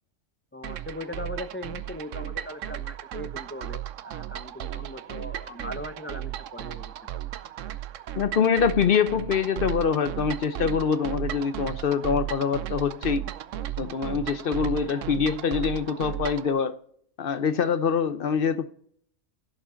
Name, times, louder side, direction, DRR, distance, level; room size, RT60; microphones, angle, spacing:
voice 1, 0.5-7.2, left 1 dB, 15° left, 0.4 m, -39 dB
sound 1, 0.6-16.5, right 12 dB, 85° right, 1.0 m, -35 dB
voice 2, 8.2-13.2 13.8-16.8 17.2-18.7, left 6 dB, 55° left, 0.7 m, -25 dB
16.0 x 7.2 x 3.8 m
omnidirectional pair, 1.3 m